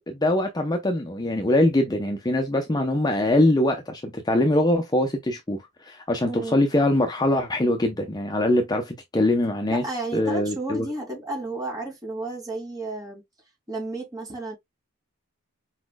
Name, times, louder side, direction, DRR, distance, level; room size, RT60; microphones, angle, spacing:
voice 1, 0.0-9.8 10.1-10.9, left 1 dB, 20° left, 0.6 m, -23 dB
voice 2, 6.2-6.6 9.7-13.2 13.7-14.6, right 2 dB, 15° right, 2.4 m, -32 dB
4.9 x 4.2 x 2.2 m
head